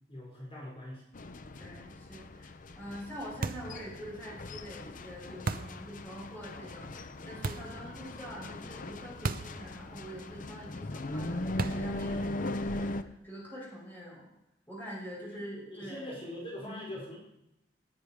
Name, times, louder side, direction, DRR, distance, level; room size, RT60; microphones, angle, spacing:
voice 1, 0.1-1.0 15.2-17.2, left 1 dB, 30° left, -3 dB, 4.9 m, -43 dB
sound 1, 1.1-13.0, left 1 dB, 45° left, 0.7 m, -39 dB
voice 2, 1.6-2.5 2.7-14.3 14.7-16.1 16.6-16.8, equal, 10° left, -4 dB, 5.2 m, -45 dB
sound 2, 3.4-3.8 5.5-5.8 7.4-7.8 9.2-9.6 9.9-10.0 11.6-12.0, right 3 dB, 50° right, 0.6 m, -34 dB
18.5 x 10.0 x 4.9 m, 0.86 s
head